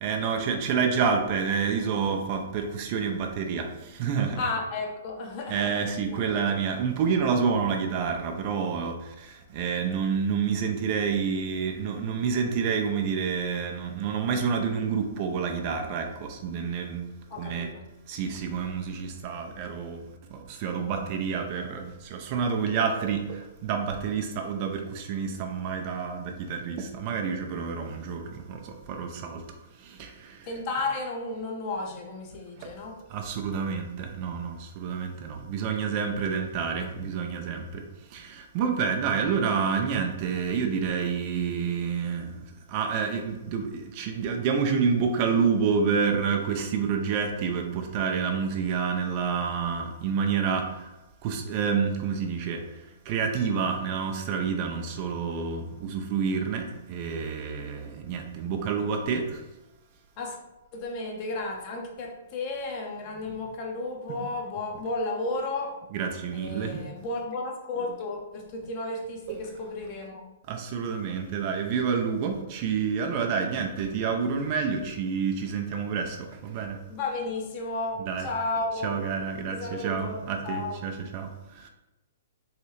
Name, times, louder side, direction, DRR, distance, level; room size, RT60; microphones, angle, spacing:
voice 1, 0.0-4.4 5.5-17.0 17.4-17.7 18.1-20.0 20.3-29.4 29.8-30.5 32.6-32.7 33.1-37.8 38.1-42.4 42.7-50.9 51.2-52.6 53.1-59.4 65.9-66.8 69.3-69.4 70.5-76.8 78.1-78.2 78.8-79.6 79.8-81.7, right 6 dB, 40° right, 4 dB, 0.5 m, -28 dB
voice 2, 4.4-6.2 17.3-17.8 30.4-33.0 60.2-60.4 60.7-65.8 66.3-70.2 76.9-79.1 79.5-80.9, left 2 dB, 40° left, 2 dB, 0.8 m, -33 dB
3.2 x 2.7 x 3.0 m, 1.0 s
figure-of-eight pair, 120°, 0 cm